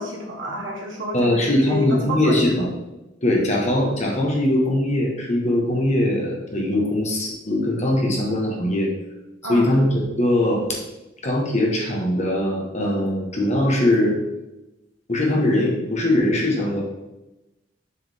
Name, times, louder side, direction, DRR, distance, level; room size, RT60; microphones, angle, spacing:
voice 1, 0.0-2.7 9.4-9.8, left 1 dB, 80° right, -1 dB, 1.6 m, -29 dB
voice 2, 1.1-2.7 3.2-8.9 9.5-10.7 11.2-14.2 15.1-16.8, left 1 dB, 35° left, -1 dB, 1.5 m, -21 dB
6.6 x 4.9 x 3.6 m, 0.98 s
head